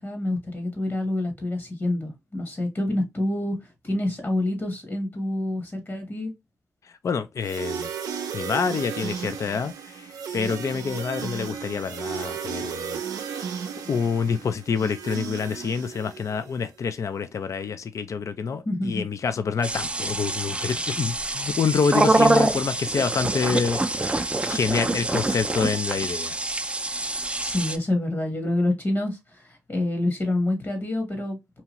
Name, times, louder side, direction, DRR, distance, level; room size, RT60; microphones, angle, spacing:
voice 1, 0.0-3.6 3.8-6.3 18.6-19.0 27.4-31.6, left 1 dB, 40° left, 1.1 m, -27 dB
voice 2, 7.0-7.9 8.3-13.4 13.9-26.4, left 6 dB, 60° left, 0.4 m, -27 dB
sound 1, 7.4-16.5, right 7 dB, 85° right, 0.4 m, -34 dB
sound 2, 19.6-27.8, right 2 dB, 20° right, 0.4 m, -25 dB
2.8 x 2.4 x 2.9 m
cardioid pair, 55°, 6 cm